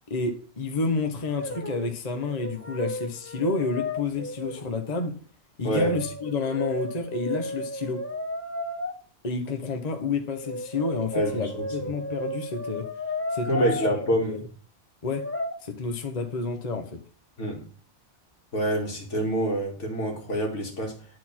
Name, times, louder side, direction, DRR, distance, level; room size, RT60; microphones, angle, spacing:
voice 1, 0.1-5.2 5.6-8.0 9.2-12.9 13.3-13.9 14.2-14.4 15.0-15.3 15.6-17.0, left 3 dB, 35° left, 1.0 m, -30 dB
Brass instrument, 1.2-1.9 2.2-4.7 5.7-8.9 10.3-14.1 15.1-15.5, left 1 dB, 15° left, 0.7 m, -33 dB
voice 2, 5.6-6.0 11.1-11.9 13.5-14.4 17.4-17.7 18.5-21.1, right 1 dB, 75° left, 2.3 m, -27 dB
10.5 x 4.3 x 4.3 m
omnidirectional pair, 1.2 m